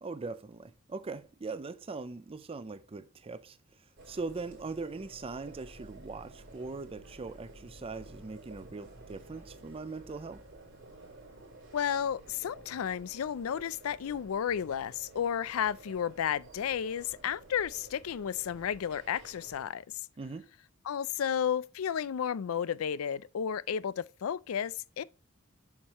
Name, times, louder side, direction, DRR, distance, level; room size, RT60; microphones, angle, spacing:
voice 1, 0.0-3.6 4.1-10.4 20.2-20.5, right 3 dB, 25° right, 0.4 m, -41 dB
sound 1, 4.0-19.6, right 2 dB, 60° right, 3.2 m, -52 dB
voice 2, 11.7-19.8 20.8-25.0, left 8 dB, 85° left, 0.4 m, -32 dB
7.3 x 6.5 x 2.9 m
head